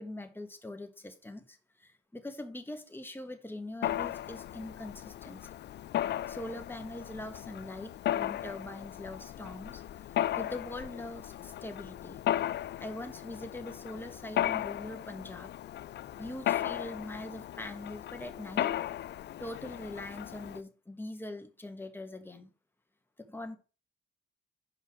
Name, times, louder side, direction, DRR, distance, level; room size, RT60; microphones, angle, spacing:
voice 1, 0.0-5.5 6.3-9.8 10.3-12.2 12.8-15.5 16.2-18.8 19.4-22.5 23.2-23.6, left 1 dB, 10° left, 1.6 m, -42 dB
Mechanisms, 3.8-20.6, left 12 dB, 60° left, 0.5 m, -36 dB
5.7 x 5.5 x 6.3 m
cardioid pair, 90°, 20 cm